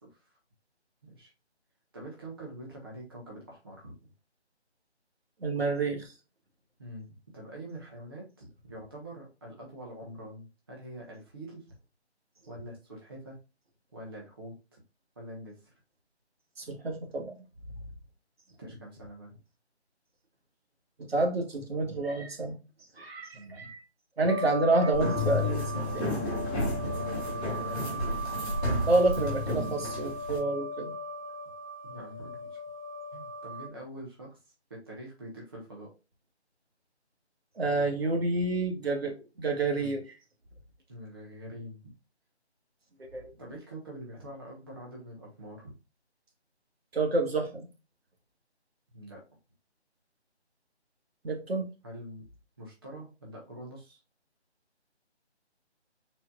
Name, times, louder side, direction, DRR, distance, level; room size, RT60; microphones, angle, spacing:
voice 1, 0.0-0.4 1.0-1.3 1.9-3.9 6.8-11.7 12.5-13.4 13.9-14.8 15.2-15.7 18.6-19.4 23.3-23.7 26.4-28.0 31.8-32.6 33.1-35.9 39.7-39.9 40.9-41.9 43.4-45.7 48.9-49.2 51.8-52.2 52.6-54.0, right 1 dB, 20° right, 0.9 m, -45 dB
voice 2, 5.4-6.1 16.6-17.3 21.0-22.6 23.0-23.8 24.2-26.1 28.9-30.9 37.6-40.0 43.1-43.3 46.9-47.7 51.2-51.7, right 2 dB, 60° right, 1.5 m, -29 dB
sound 1, 24.3-33.7, left 1 dB, 30° left, 0.5 m, -38 dB
sound 2, 24.9-30.4, left 1 dB, 10° left, 2.0 m, -32 dB
4.9 x 4.4 x 2.3 m
figure-of-eight pair, 165°, 34 cm